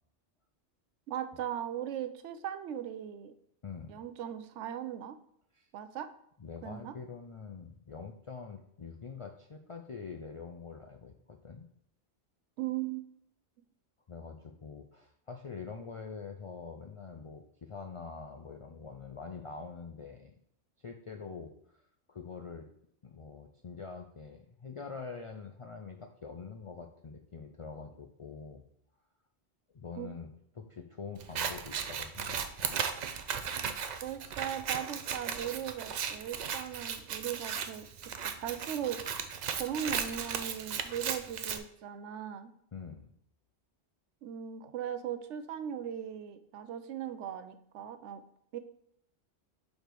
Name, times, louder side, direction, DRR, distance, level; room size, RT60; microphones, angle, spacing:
voice 1, 1.1-3.3 3.9-5.2 5.7-6.1 6.6-6.9 12.6-13.0 30.0-30.1 34.0-37.9 38.4-39.0 39.6-42.5 44.2-48.2 48.5-48.6, right 10 dB, 85° right, 11 dB, 0.9 m, -38 dB
voice 2, 3.6-4.0 5.5-5.7 6.4-11.7 14.1-20.3 20.8-21.8 22.1-22.7 23.0-28.6 29.7-30.3 30.6-32.8 42.7-43.1, left 5 dB, 60° left, 3 dB, 0.3 m, -45 dB
Scissors, 31.2-41.6, right 7 dB, 60° right, 0.5 m, -36 dB
5.1 x 4.3 x 4.5 m, 0.74 s
omnidirectional pair, 1.2 m